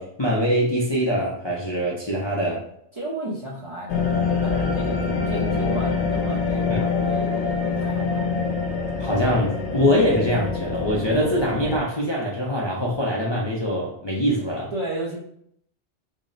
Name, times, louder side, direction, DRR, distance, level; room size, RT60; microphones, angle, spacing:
voice 1, 0.0-2.7 6.7-6.8 9.0-14.7, equal, 35° left, -5 dB, 0.4 m, -23 dB
voice 2, 2.9-7.3 7.7-8.3 14.4-15.2, right 2 dB, 40° right, -5 dB, 0.4 m, -33 dB
sound 1, 3.9-11.8, left 4 dB, 75° left, 0.9 m, -25 dB
3.6 x 2.0 x 3.8 m, 0.69 s
omnidirectional pair, 1.2 m